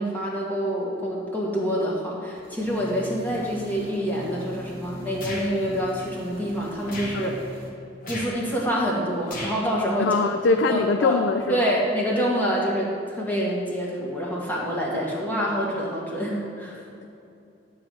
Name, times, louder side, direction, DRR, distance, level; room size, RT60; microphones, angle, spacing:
voice 1, 0.0-7.4 8.1-10.2 10.7-11.2 11.5-16.8, equal, 10° left, -5 dB, 1.8 m, -26 dB
sound 1, 2.3-7.7, equal, 30° right, 1.9 m, -41 dB
sound 2, 5.2-5.5 6.8-7.2 8.0-8.3 9.2-9.6, left 1 dB, 50° left, 1.7 m, -34 dB
voice 2, 10.0-11.6, left 4 dB, 75° left, 6 dB, 0.4 m, -22 dB
11.5 x 3.9 x 7.6 m, 2.7 s
head